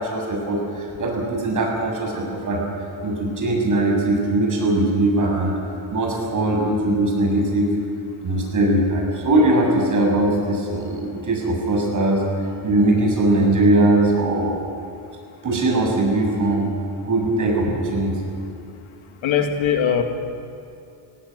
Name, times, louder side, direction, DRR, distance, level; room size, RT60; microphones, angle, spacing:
voice 1, 0.0-2.7 3.0-5.5 5.9-7.7 8.2-12.2 12.6-14.6 15.4-16.7 17.0-18.3, right 2 dB, 40° right, 0 dB, 7.2 m, -20 dB
voice 2, 19.2-20.0, left 8 dB, 90° left, 4 dB, 2.3 m, -20 dB
19.0 x 17.0 x 9.7 m, 2.7 s
cardioid pair, 130°, 46 cm